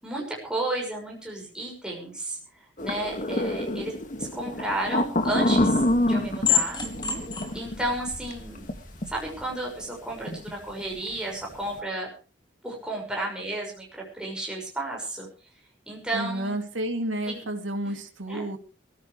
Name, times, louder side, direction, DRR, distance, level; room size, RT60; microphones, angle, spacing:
voice 1, 0.0-2.4 2.8-6.8 7.5-8.7 9.1-12.1 12.6-15.3 15.9-16.6 17.3-17.5 18.3-18.5, right 1 dB, 5° right, -2 dB, 6.1 m, -32 dB
sound 1, 2.8-8.7 9.0-9.1 10.3-10.5 10.8-11.1, left 1 dB, 45° left, 2.0 m, -26 dB
sound 2, 5.2-9.4, left 7 dB, 25° left, 2.8 m, -31 dB
voice 2, 16.1-18.6, right 1 dB, 85° right, 5 dB, 2.9 m, -31 dB
23.0 x 15.0 x 3.3 m, 0.37 s
head